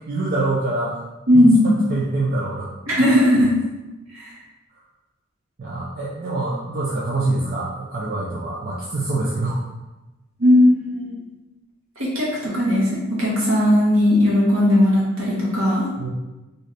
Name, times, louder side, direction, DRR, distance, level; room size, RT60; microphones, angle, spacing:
voice 1, 0.1-1.0 1.3-2.7 5.6-9.6 16.0-16.1, right 2 dB, 45° right, -5 dB, 0.4 m, -25 dB
voice 2, 1.3-1.8 2.9-3.5 4.1-4.3 10.4-11.1 12.0-15.9, left 1 dB, 75° right, -5 dB, 1.1 m, -17 dB
2.6 x 2.4 x 3.2 m, 1.1 s
head